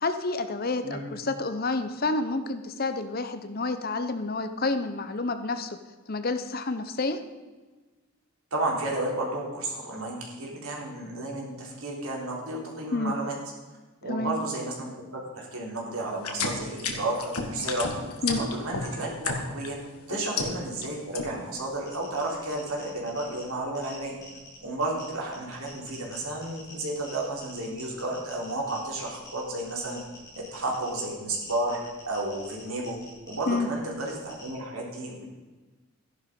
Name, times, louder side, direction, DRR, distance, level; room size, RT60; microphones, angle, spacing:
voice 1, 0.0-5.8 6.1-7.2 12.9-13.1 14.1-14.3 18.2-18.4 20.1-20.2 33.5-33.7, left 3 dB, 40° left, 10 dB, 0.8 m, -29 dB
voice 2, 8.5-13.3 14.0-19.8 20.1-24.2 24.6-30.0 30.3-31.8 32.1-33.0 33.2-35.2, right 2 dB, 70° right, -2 dB, 3.9 m, -32 dB
sound 1, 16.2-19.7 20.1-20.9 21.1-21.6, left 4 dB, 85° left, 1.8 m, -31 dB
sound 2, 21.6-34.5, left 1 dB, 15° left, 5.5 m, -49 dB
14.0 x 11.0 x 5.3 m, 1.3 s
head